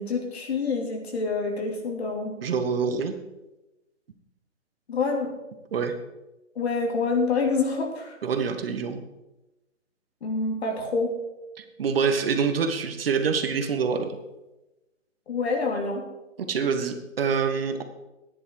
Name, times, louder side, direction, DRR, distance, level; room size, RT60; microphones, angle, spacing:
voice 1, 0.0-2.4 4.9-5.3 6.5-8.2 10.2-11.1 15.3-16.0, left 4 dB, 55° left, 2 dB, 3.0 m, -27 dB
voice 2, 2.4-3.1 5.7-5.9 8.2-9.0 11.6-14.2 16.5-17.8, right 6 dB, 45° right, 7 dB, 1.4 m, -26 dB
12.5 x 10.0 x 4.8 m, 1.0 s
hypercardioid pair, 150°, 39 cm